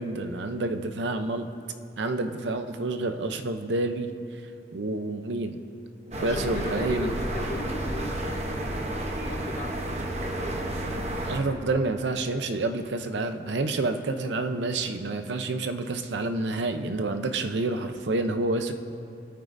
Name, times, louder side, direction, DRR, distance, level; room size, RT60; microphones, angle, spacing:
voice 1, 0.0-1.5 2.0-4.1 4.7-5.6 6.2-7.1 11.2-18.7, right 2 dB, 85° right, 8 dB, 0.7 m, -28 dB
sound 1, 6.1-11.4, right 1 dB, 40° right, 0.8 m, -31 dB
voice 2, 6.2-10.0 17.5-17.6, left 2 dB, 40° left, 6 dB, 0.7 m, -38 dB
22.0 x 9.0 x 2.6 m, 2.5 s
head